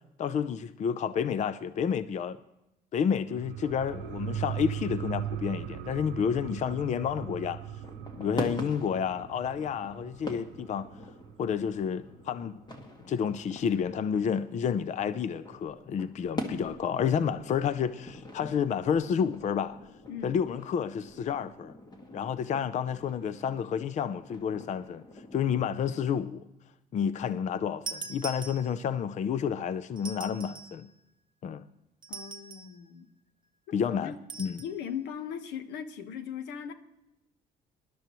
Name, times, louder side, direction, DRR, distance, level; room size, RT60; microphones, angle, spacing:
voice 1, 0.2-2.4 2.9-7.6 8.2-10.9 11.4-12.6 13.1-19.8 20.2-21.7 22.1-25.0 25.3-26.4 26.9-30.9 31.4-31.6 33.7-34.6, left 7 dB, 45° left, 0.6 m, -30 dB
sound 1, 3.3-12.4 12.7-12.8, right 10 dB, 80° right, 0.5 m, -39 dB
sound 2, 7.8-25.7, left 1 dB, 25° left, 1.9 m, -44 dB
voice 2, 20.1-20.4 27.0-27.7 32.1-33.1 33.7-34.1 34.6-36.7, left 8 dB, 85° left, 1.3 m, -39 dB
sound 3, 27.9-29.0 30.0-30.8 32.0-32.8 34.3-34.7, right 4 dB, 25° right, 1.1 m, -41 dB
20.0 x 12.0 x 3.1 m
cardioid pair, 110°, 17 cm